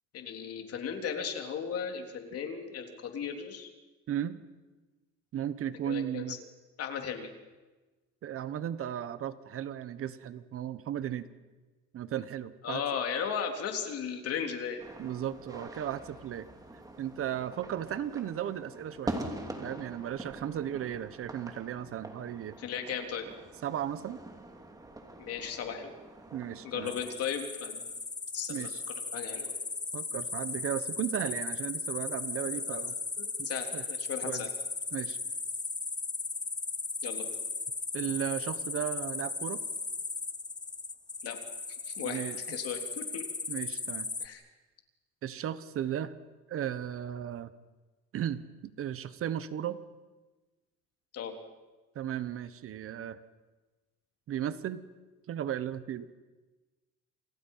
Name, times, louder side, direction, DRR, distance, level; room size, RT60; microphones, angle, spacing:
voice 1, 0.1-3.7 5.9-6.4 6.8-7.3 12.6-14.8 22.6-23.2 25.2-25.9 26.6-27.9 28.3-28.7 29.1-29.5 32.7-32.8 33.2-34.5 37.0-37.3 41.2-41.4 41.9-42.2 42.5-43.2 44.2-44.4 51.1-51.3, left 7 dB, 50° left, 4 dB, 3.6 m, -36 dB
voice 2, 4.1-4.4 5.3-6.4 8.2-11.3 11.9-12.8 15.0-16.5 17.0-19.2 19.6-22.6 23.6-24.2 26.3-26.9 28.5-28.8 29.9-32.9 33.4-33.8 34.2-34.5 34.9-35.2 37.9-39.6 42.0-42.4 43.5-44.1 45.2-46.1 46.5-47.5 48.1-49.8 51.9-53.2 54.3-54.8 55.3-56.1, right 10 dB, 45° right, 13 dB, 1.2 m, -35 dB
sound 1, 14.8-27.2, right 2 dB, 10° right, 2.8 m, -44 dB
sound 2, 26.9-44.3, left 4 dB, 15° left, 1.0 m, -37 dB
28.5 x 28.5 x 5.7 m, 1.2 s
cardioid pair, 140°, 30 cm